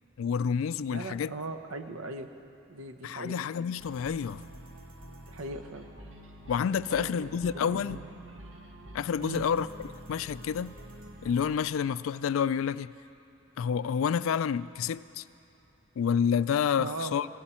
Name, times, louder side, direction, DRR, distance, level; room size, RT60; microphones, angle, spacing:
voice 1, 0.2-1.3 3.0-4.4 6.5-8.0 8.9-9.7 10.1-10.7 11.2-12.9 13.6-15.2 16.0-17.3, left 7 dB, 75° left, 0.3 m, -29 dB
voice 2, 0.8-2.3 2.7-3.4 5.3-5.9 6.9-8.1 9.2-9.5 16.8-17.2, right 2 dB, 85° right, 0.9 m, -39 dB
sound 1, 3.8-11.6, right 1 dB, 70° right, 1.4 m, -47 dB
19.0 x 15.5 x 4.3 m
head